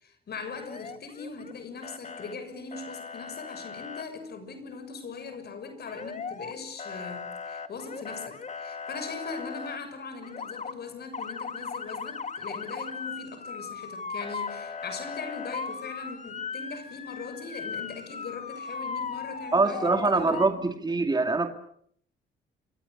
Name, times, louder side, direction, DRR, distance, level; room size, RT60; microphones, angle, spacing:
voice 1, 0.0-20.4, left 4 dB, 55° left, 6.9 m, -40 dB
Motor vehicle (road) / Siren, 0.5-1.5 1.8-2.3 2.7-4.0 5.9-6.5 6.8-9.8 10.2-10.7 11.1-20.5, left 5 dB, 35° left, 2.4 m, -38 dB
voice 2, 19.5-21.5, right 3 dB, 20° right, 2.5 m, -24 dB
28.0 x 26.0 x 6.8 m
cardioid pair, 90°, 20 cm